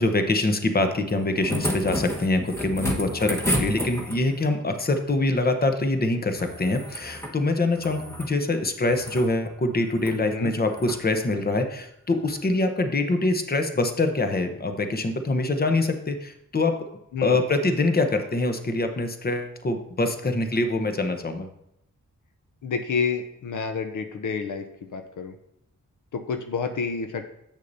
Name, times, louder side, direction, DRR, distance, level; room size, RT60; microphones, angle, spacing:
voice 1, 0.0-16.9 17.2-21.5, left 2 dB, 30° left, 7 dB, 0.9 m, -24 dB
sound 1, 1.1-4.4 6.3-7.4 7.7-8.3 8.8-9.3 9.9-10.2 10.7-11.0 12.4-12.5, equal, 10° left, 1.3 m, -30 dB
voice 2, 10.1-10.5 17.1-17.4 22.6-24.7 24.9-25.4 26.1-27.3, left 5 dB, 70° left, 7 dB, 0.7 m, -29 dB
8.3 x 6.3 x 2.7 m, 0.78 s
cardioid pair, 60°, 32 cm